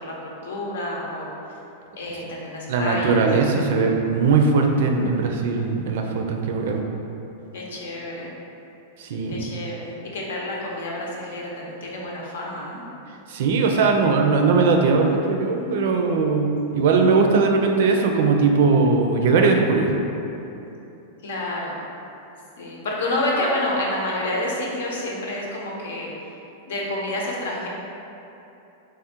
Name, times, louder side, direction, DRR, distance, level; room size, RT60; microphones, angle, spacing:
voice 1, 0.0-1.3 2.0-3.3 7.5-8.3 9.3-12.8 21.2-21.8 22.6-26.1 26.6-27.7, left 1 dB, 90° left, -3 dB, 0.8 m, -29 dB
voice 2, 2.7-6.8 9.0-9.4 13.3-19.9, right 4 dB, 65° right, 3 dB, 0.4 m, -20 dB
3.2 x 2.4 x 4.3 m, 2.9 s
supercardioid pair, 150°, 0 cm